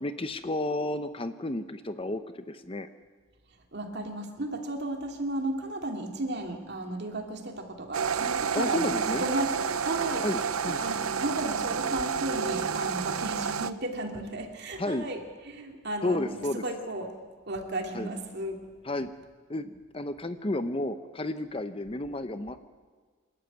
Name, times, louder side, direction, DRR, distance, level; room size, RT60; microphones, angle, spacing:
voice 1, 0.0-2.9 8.5-9.2 10.2-10.8 14.8-15.1 16.0-16.6 17.9-18.1 18.8-19.1 19.5-22.6, left 1 dB, 25° left, 10 dB, 0.8 m, -32 dB
voice 2, 3.7-10.2 10.7-17.1 17.5-18.6, right 1 dB, 50° right, 3 dB, 2.8 m, -34 dB
sound 1, 7.9-13.7, right 6 dB, 85° right, 0.7 m, -30 dB
27.5 x 13.0 x 9.3 m, 1.5 s
head